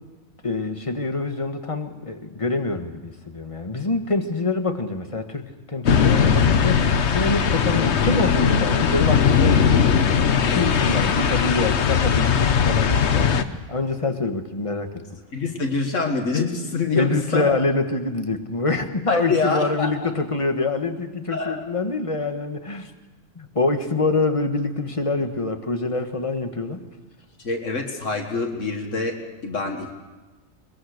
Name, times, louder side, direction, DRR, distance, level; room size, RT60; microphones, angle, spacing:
voice 1, 0.4-9.8 10.4-15.0 16.9-22.9 23.3-26.9, left 3 dB, 25° left, 6 dB, 1.5 m, -25 dB
sound 1, 5.9-13.4, left 6 dB, 65° left, 1.2 m, -19 dB
voice 2, 15.3-17.5 19.1-20.1 21.3-21.6 27.4-29.9, left 4 dB, 85° left, 2 dB, 2.2 m, -25 dB
21.5 x 21.5 x 6.6 m, 1.2 s
omnidirectional pair, 1.3 m